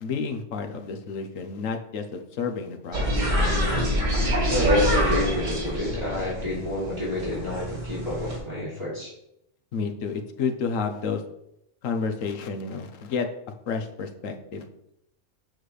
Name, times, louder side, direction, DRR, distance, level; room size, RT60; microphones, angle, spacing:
voice 1, 0.0-3.3 9.7-11.2 11.8-13.3 13.7-14.7, left 5 dB, 85° left, 5 dB, 1.2 m, -30 dB
sound 1, 2.9-8.4, equal, 90° right, 2.5 m, -26 dB
voice 2, 4.5-9.1, left 1 dB, 20° right, -9 dB, 3.0 m, -28 dB
7.8 x 6.4 x 3.3 m, 0.80 s
omnidirectional pair, 1.3 m